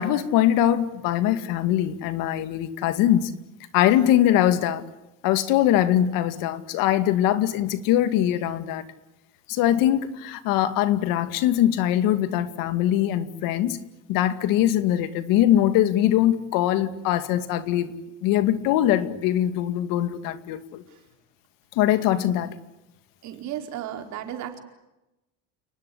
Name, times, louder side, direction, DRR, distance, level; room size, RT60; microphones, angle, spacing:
voice 1, 0.0-3.3 3.7-4.8 5.2-8.8 9.5-13.8 14.1-17.9 18.2-20.8 21.7-22.5, left 12 dB, 80° left, 12 dB, 2.4 m, -22 dB
voice 2, 23.2-24.6, right 10 dB, 55° right, 5 dB, 4.7 m, -34 dB
29.5 x 20.0 x 10.0 m, 0.95 s
cardioid pair, 155°, 33 cm